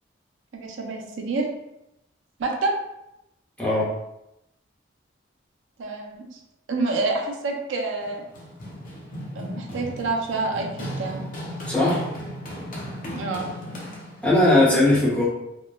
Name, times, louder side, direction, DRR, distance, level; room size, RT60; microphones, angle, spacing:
voice 1, 0.5-1.5 2.4-2.7 5.8-6.4 6.7-8.2 9.4-11.2 13.1-13.5, right 3 dB, 70° right, 1 dB, 0.4 m, -28 dB
voice 2, 3.6-3.9 11.7-12.0 14.2-15.3, left 1 dB, 10° left, -7 dB, 0.7 m, -19 dB
Run, 8.0-14.4, equal, 45° left, 0.6 m, -36 dB
2.9 x 2.1 x 2.2 m, 0.87 s
head